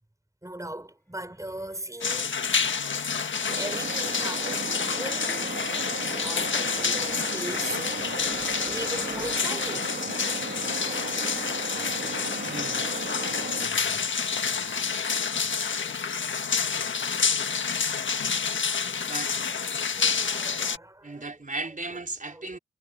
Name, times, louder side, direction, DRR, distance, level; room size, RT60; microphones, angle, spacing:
voice 1, 0.4-2.7 3.6-5.5 6.2-10.0 10.9-11.3 11.7-11.8 16.5-16.9 17.8-17.9 19.5-21.3 22.2-22.5, right 1 dB, 15° right, 6.5 m, -39 dB
sound 1, 1.4-9.5, equal, 10° left, 5.3 m, -46 dB
sound 2, 2.0-20.8, left 6 dB, 70° left, 1.6 m, -28 dB
sound 3, 3.5-13.7, right 4 dB, 60° right, 3.5 m, -36 dB
voice 2, 12.4-13.0 19.1-19.3 21.0-22.6, right 3 dB, 40° right, 4.8 m, -36 dB
cardioid pair, 40°, 20 cm